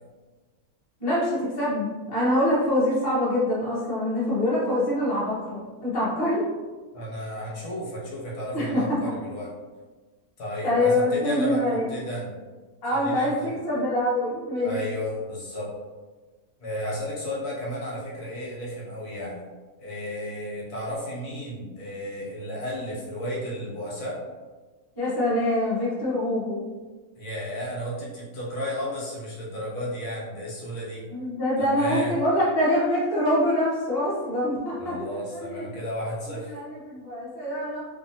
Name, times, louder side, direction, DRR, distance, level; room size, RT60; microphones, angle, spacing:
voice 1, 1.0-6.5 8.5-9.0 10.6-11.9 12.8-14.8 25.0-26.6 31.1-35.6 36.4-37.8, left 1 dB, 20° left, -8 dB, 0.7 m, -25 dB
voice 2, 6.9-9.5 10.4-12.4 13.0-13.5 14.6-15.7 16.6-19.4 19.8-24.2 27.2-31.0 31.6-32.1 34.8-36.5, equal, 85° left, -5 dB, 1.4 m, -33 dB
2.7 x 2.6 x 2.7 m, 1.3 s
omnidirectional pair, 1.6 m